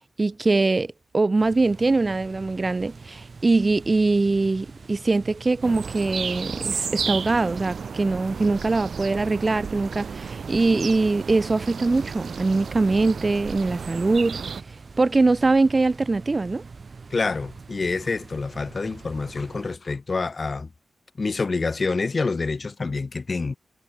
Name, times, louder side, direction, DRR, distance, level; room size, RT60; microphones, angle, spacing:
voice 1, 0.2-14.4 15.0-16.6, right 3 dB, 35° right, 0.4 m, -22 dB
sound 1, 1.4-19.8, right 4 dB, 50° right, 2.0 m, -44 dB
sound 2, 5.6-14.6, right 6 dB, 70° right, 0.8 m, -33 dB
voice 2, 17.1-20.7 21.2-23.6, left 4 dB, 45° left, 0.5 m, -27 dB
wide cardioid pair, 85°, 0 cm